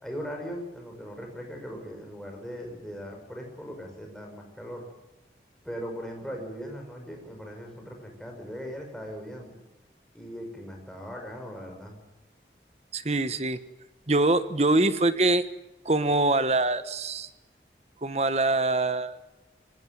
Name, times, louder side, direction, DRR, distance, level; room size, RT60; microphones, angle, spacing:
voice 1, 0.0-4.8 5.6-9.5 10.1-12.0, equal, 5° left, 1 dB, 5.6 m, -39 dB
voice 2, 12.9-13.6 14.1-15.4 15.8-17.3 18.0-19.2, right 2 dB, 40° right, 12 dB, 1.2 m, -24 dB
19.5 x 18.0 x 9.4 m, 1.0 s
head